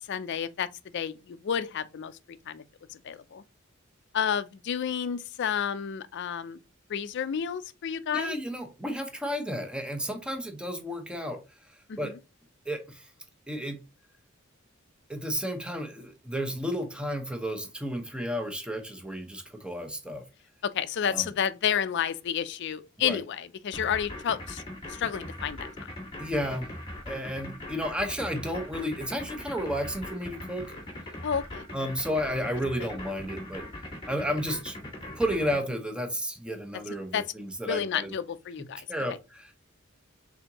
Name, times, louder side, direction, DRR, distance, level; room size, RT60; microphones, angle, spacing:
voice 1, 0.1-0.7 0.9-2.6 2.9-3.4 4.1-6.6 6.9-8.4 11.9-12.1 20.6-24.6 24.9-25.9 31.2-31.7 32.8-32.9 37.1-37.2 37.7-38.9, left 8 dB, 60° left, 0.4 m, -30 dB
voice 2, 8.1-11.4 12.0-12.1 12.7-13.1 13.5-13.8 15.1-20.2 21.1-21.3 23.0-23.2 26.2-26.7 27.1-30.7 31.7-34.8 35.1-38.1 38.9-39.5, equal, 5° right, 0.8 m, -32 dB
sound 1, 23.7-35.6, left 1 dB, 25° left, 1.6 m, -40 dB
4.3 x 3.6 x 2.9 m
head